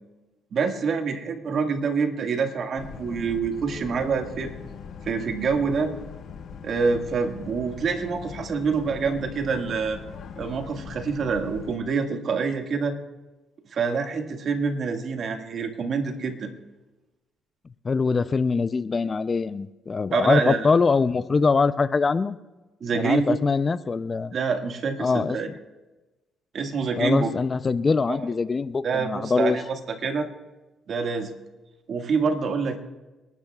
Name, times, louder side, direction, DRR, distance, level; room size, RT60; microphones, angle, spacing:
voice 1, 0.5-4.5 5.0-5.9 6.6-10.0 10.4-13.0 13.7-16.5 20.1-20.7 22.8-23.4 24.3-25.5 26.5-27.3 28.1-28.2 28.8-30.3 30.9-31.3 31.9-32.8, right 5 dB, 60° right, 4 dB, 1.8 m, -26 dB
Boat Water vehicle, 2.8-11.8, left 6 dB, 65° left, 1.0 m, -41 dB
voice 2, 17.8-22.4 22.9-24.3 25.0-25.4 27.0-29.6, left 4 dB, 35° left, 14 dB, 0.5 m, -23 dB
27.0 x 12.0 x 2.4 m, 1.1 s
cardioid pair, 90°, 0 cm